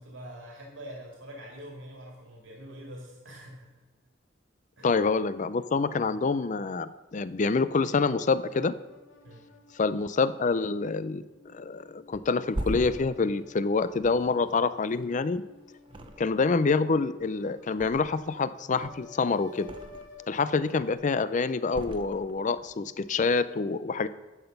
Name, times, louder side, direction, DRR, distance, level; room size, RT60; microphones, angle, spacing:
voice 1, 0.0-3.7 4.8-4.9 6.0-6.1 9.2-9.5 15.9-16.1, equal, 85° right, -1 dB, 2.2 m, -45 dB
voice 2, 4.8-8.7 9.7-11.2 11.5-15.4 16.2-19.7 20.3-24.1, left 4 dB, 40° left, 15 dB, 0.4 m, -27 dB
sound 1, 7.5-20.9, left 4 dB, 75° left, 2.1 m, -53 dB
Thump thud, 12.1-15.4 15.8-16.6 16.9-18.4 18.7-20.3 20.6-21.2 21.7-22.7 23.0-23.2, right 1 dB, 25° right, 0.7 m, -40 dB
11.0 x 7.9 x 5.3 m, 1.2 s
head